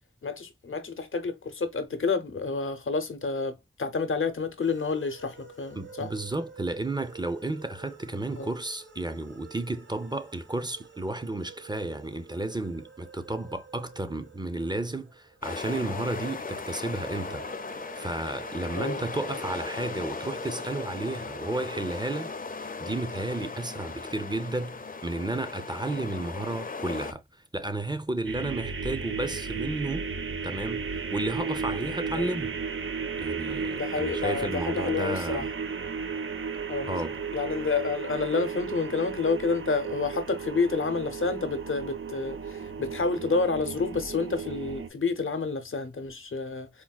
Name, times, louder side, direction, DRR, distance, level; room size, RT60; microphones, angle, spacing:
voice 1, 0.2-6.1 8.3-8.5 18.7-19.0 32.1-32.3 33.8-35.5 36.7-37.0 37.3-46.8, left 4 dB, 85° left, 0.6 m, -29 dB
sound 1, 4.6-16.4 17.1-20.9, right 5 dB, 65° right, 0.9 m, -49 dB
voice 2, 5.8-17.5 17.9-30.1 30.4-32.6 33.2-35.5 36.9-37.2, right 2 dB, 20° right, 0.5 m, -32 dB
sound 2, 15.4-27.1, left 4 dB, 45° left, 0.5 m, -37 dB
sound 3, 28.2-44.9, right 5 dB, 80° right, 0.5 m, -34 dB
4.4 x 2.2 x 2.3 m
wide cardioid pair, 45°, 20 cm